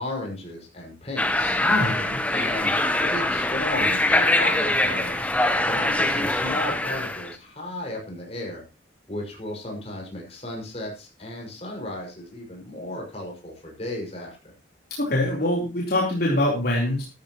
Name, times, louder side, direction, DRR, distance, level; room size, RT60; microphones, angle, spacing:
voice 1, 0.0-1.9 2.3-2.7 3.0-5.3 5.7-8.6 9.1-14.5, left 1 dB, 35° left, -1 dB, 6.1 m, -34 dB
sound 1, 1.2-7.3, left 1 dB, 10° left, 1.1 m, -23 dB
voice 2, 1.6-2.2 15.0-17.0, left 1 dB, 55° left, -3 dB, 3.9 m, -24 dB
14.0 x 13.5 x 3.1 m, 0.29 s
head